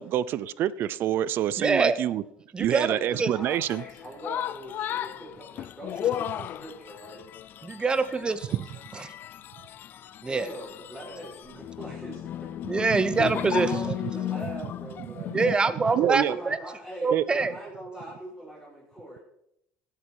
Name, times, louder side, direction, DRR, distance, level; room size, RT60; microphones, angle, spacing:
voice 1, 0.0-2.2 2.6-3.8 8.5-8.6 15.1-15.2 15.9-16.4 17.1-17.2, right 11 dB, 55° right, 19 dB, 0.5 m, -26 dB
voice 2, 1.6-2.0 2.5-2.9 3.2-3.3 7.6-8.6 8.9-9.1 10.2-10.5 12.7-13.9 15.3-16.6 17.0-17.5, right 4 dB, 20° right, 14 dB, 0.9 m, -25 dB
voice 3, 2.8-7.2 8.1-8.2 10.3-12.5 13.5-15.4 15.8-19.2, right 1 dB, 5° right, -6 dB, 6.1 m, -41 dB
sound 1, 3.5-15.6, left 11 dB, 50° left, 0.4 m, -35 dB
16.0 x 8.4 x 4.7 m, 0.76 s
supercardioid pair, 100°, 4 cm